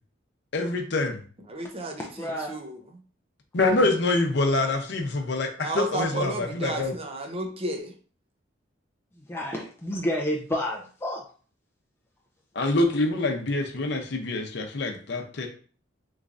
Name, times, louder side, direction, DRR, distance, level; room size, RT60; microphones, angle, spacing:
voice 1, 0.5-1.2 3.5-6.9 12.5-15.5, left 2 dB, 65° left, 4 dB, 0.7 m, -25 dB
voice 2, 1.5-3.0 5.6-7.9, right 2 dB, 30° right, 4 dB, 0.6 m, -33 dB
voice 3, 2.2-2.5 9.2-11.2, equal, 15° left, -1 dB, 0.4 m, -30 dB
3.6 x 3.1 x 2.5 m, 0.41 s
head